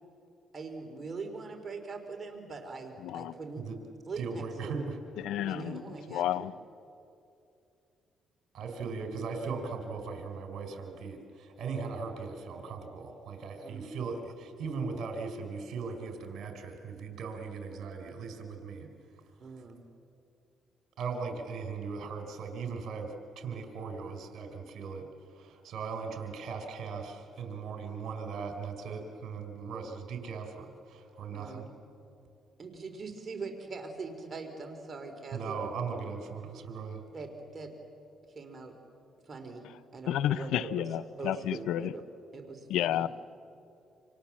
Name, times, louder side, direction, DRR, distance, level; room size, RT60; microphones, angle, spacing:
voice 1, 0.5-3.6 4.1-4.7 5.4-6.5 13.6-13.9 19.4-19.8 31.3-31.7 32.6-35.7 37.1-37.7 38.4-38.7 39.2-39.7 39.9-40.9 41.2-42.1 42.3-43.1, right 4 dB, 35° right, 3.9 m, -42 dB
voice 2, 3.0-3.3 5.2-5.8 6.1-6.5 40.1-41.9 42.7-43.1, left 12 dB, 90° left, 0.7 m, -31 dB
voice 3, 4.2-5.0 8.5-18.9 21.0-31.7 35.3-37.0, right 5 dB, 70° right, 4.3 m, -38 dB
29.0 x 27.0 x 7.5 m
cardioid pair, 90°, 0 cm